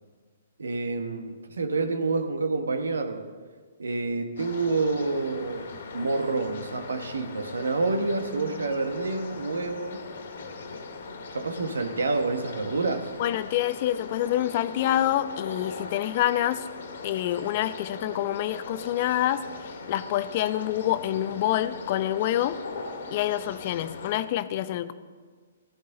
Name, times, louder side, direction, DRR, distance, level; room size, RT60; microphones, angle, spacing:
voice 1, 0.6-3.3 3.8-10.1 11.3-13.1, right 3 dB, 80° right, 1.2 m, -28 dB
sound 1, 4.4-24.2, left 4 dB, 65° left, 1.8 m, -40 dB
voice 2, 13.2-16.7 17.0-22.6 23.1-24.9, left 12 dB, 45° left, 0.7 m, -27 dB
18.0 x 14.0 x 3.9 m
hypercardioid pair, 130°, 0 cm